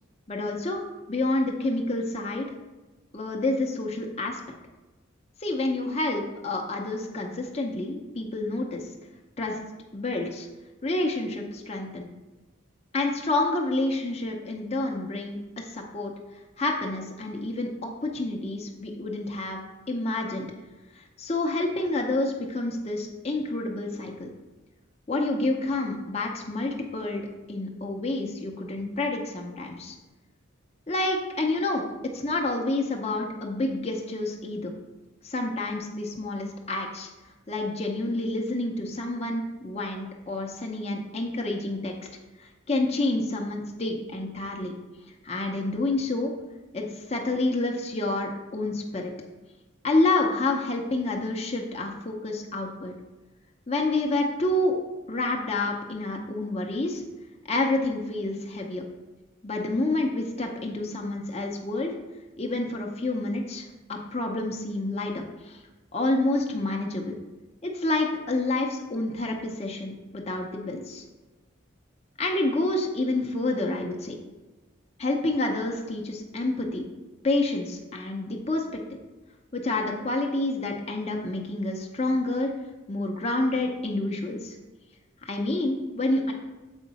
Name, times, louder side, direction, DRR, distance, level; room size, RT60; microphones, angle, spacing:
voice 1, 0.3-0.8 1.1-2.5 3.1-4.4 5.4-8.9 9.4-9.6 9.9-10.5 10.8-12.1 12.9-16.1 16.6-19.6 19.9-20.5 20.9-24.3 25.1-30.0 30.9-34.7 35.2-37.1 37.5-41.9 42.4-44.7 45.2-46.3 46.7-49.1 49.8-52.9 53.7-54.8 55.1-57.0 57.5-58.8 59.4-61.9 62.4-65.6 65.9-67.2 67.6-71.0 72.2-74.1 75.0-76.9 77.2-78.8 79.5-82.5 82.9-84.6 85.2-86.3, left 2 dB, 30° left, 1 dB, 0.7 m, -28 dB
7.1 x 4.7 x 4.1 m, 1.1 s
head